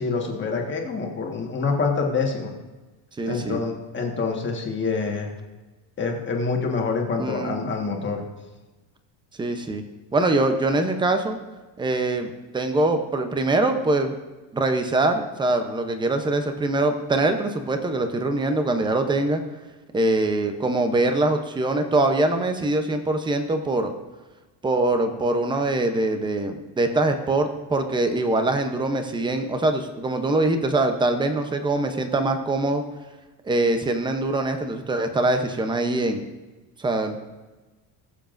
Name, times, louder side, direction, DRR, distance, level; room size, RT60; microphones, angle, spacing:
voice 1, 0.0-2.5 3.2-5.3 6.0-8.2, left 4 dB, 25° left, 1 dB, 1.5 m, -26 dB
voice 2, 3.2-3.6 7.2-7.7 9.4-9.8 10.1-11.4 11.8-14.1 14.5-19.4 19.9-23.9 24.6-32.8 33.4-36.2 36.8-37.2, right 2 dB, 10° right, 6 dB, 0.6 m, -23 dB
20.5 x 7.2 x 2.6 m, 1.2 s
cardioid pair, 155°, 49 cm